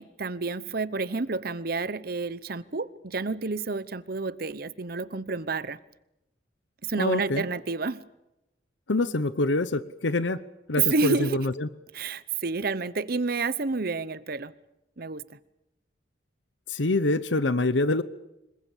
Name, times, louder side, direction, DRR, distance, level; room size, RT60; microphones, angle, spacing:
voice 1, 0.0-5.8 6.8-8.0 10.8-11.4 11.9-14.5 15.0-15.4, right 4 dB, 55° right, 0.9 m, -29 dB
voice 2, 7.0-7.4 8.9-10.4 10.7-11.7 16.7-18.0, left 2 dB, 90° left, 1.0 m, -25 dB
26.0 x 22.0 x 7.3 m
head